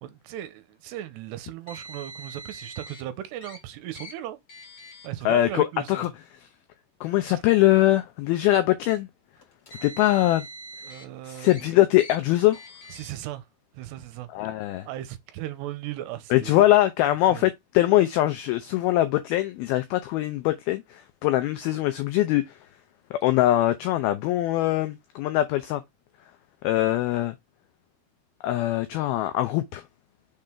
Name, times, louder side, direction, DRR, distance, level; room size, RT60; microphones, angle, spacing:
voice 1, 0.0-4.4 5.0-6.1 7.3-7.4 10.8-11.8 12.9-13.5 13.7-14.3 14.9-16.6 17.3-17.5, right 13 dB, 80° right, 2.7 m, -37 dB
Car, 1.7-3.0 3.4-3.6 3.9-4.1 4.5-5.1 5.9-6.1 7.0-7.1 9.4-11.0 11.4-11.6 12.0-12.2 12.5-13.1, right 1 dB, 60° left, 0.9 m, -43 dB
voice 2, 5.3-6.1 7.0-9.1 9.8-10.5 11.2-12.6 14.3-14.9 16.3-20.8 21.2-22.5 23.1-25.8 26.6-27.3 28.4-29.8, left 15 dB, 90° left, 2.1 m, -22 dB
6.5 x 3.8 x 4.4 m
omnidirectional pair, 5.0 m